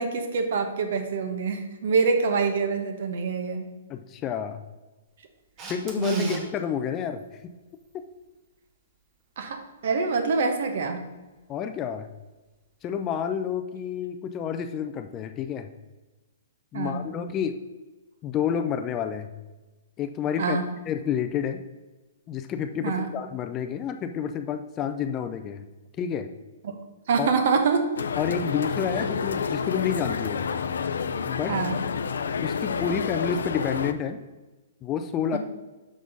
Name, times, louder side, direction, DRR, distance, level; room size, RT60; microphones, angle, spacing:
voice 1, 0.0-3.7 6.0-6.4 9.4-11.0 16.7-17.0 20.4-20.7 22.8-23.1 27.1-27.9 31.5-31.8 35.3-35.4, right 4 dB, 60° right, 6 dB, 1.0 m, -25 dB
voice 2, 3.9-4.6 5.7-7.2 11.5-12.1 12.8-15.7 16.7-17.6 18.2-19.3 20.0-20.6 20.9-21.6 22.3-25.6 26.0-26.3 27.2-27.3 28.2-30.5 31.2-31.5 32.4-34.2 34.8-35.4, left 8 dB, 20° left, 7 dB, 0.4 m, -29 dB
Camera, 5.6-6.4 13.1-13.2, right 3 dB, 25° right, 1.1 m, -37 dB
sound 1, 28.0-33.9, left 6 dB, 90° left, 0.4 m, -29 dB
6.2 x 4.1 x 5.3 m, 1.2 s
hypercardioid pair, 160°, 0 cm